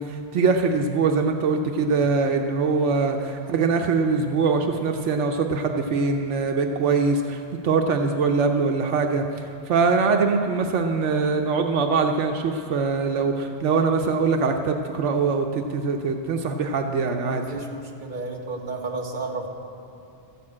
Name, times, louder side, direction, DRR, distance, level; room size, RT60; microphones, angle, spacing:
voice 1, 0.0-17.5, right 4 dB, 80° right, 4 dB, 1.1 m, -23 dB
voice 2, 17.3-19.5, right 3 dB, 45° right, 0 dB, 1.5 m, -32 dB
13.5 x 7.1 x 8.5 m, 2.9 s
omnidirectional pair, 1.2 m